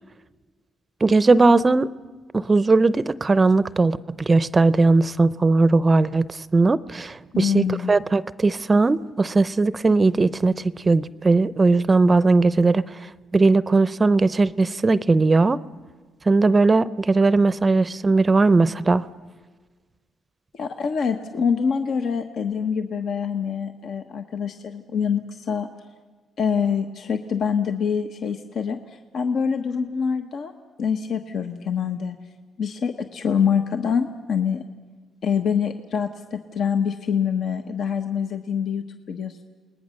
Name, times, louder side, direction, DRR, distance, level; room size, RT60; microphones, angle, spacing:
voice 1, 1.0-1.9 2.3-4.0 4.3-15.6 16.3-19.1, right 3 dB, 25° right, 16 dB, 0.6 m, -19 dB
voice 2, 7.3-7.9 20.5-25.7 26.4-30.5 30.8-32.2 32.6-34.6 35.2-39.4, left 6 dB, 65° left, 6 dB, 1.2 m, -25 dB
29.0 x 19.5 x 6.5 m, 1.4 s
cardioid pair, 90°, 0 cm